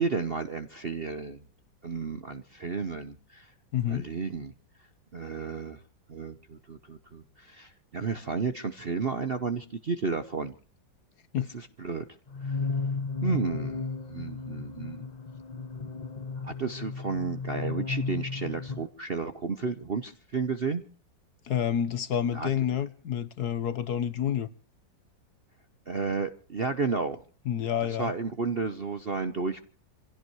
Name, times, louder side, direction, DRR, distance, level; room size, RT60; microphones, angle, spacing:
voice 1, 0.0-1.4 1.8-3.5 3.9-4.5 5.1-5.8 6.1-10.5 11.5-12.1 12.4-12.6 13.2-15.1 16.4-20.8 22.3-22.5 25.9-27.2 27.9-29.6, right 4 dB, 45° right, 0.8 m, -32 dB
voice 2, 3.7-4.1 11.3-11.5 21.4-24.5 27.5-28.1, left 9 dB, 60° left, 1.4 m, -29 dB
sound 1, 12.3-18.9, left 4 dB, 30° left, 0.9 m, -34 dB
27.0 x 16.5 x 3.1 m
omnidirectional pair, 2.1 m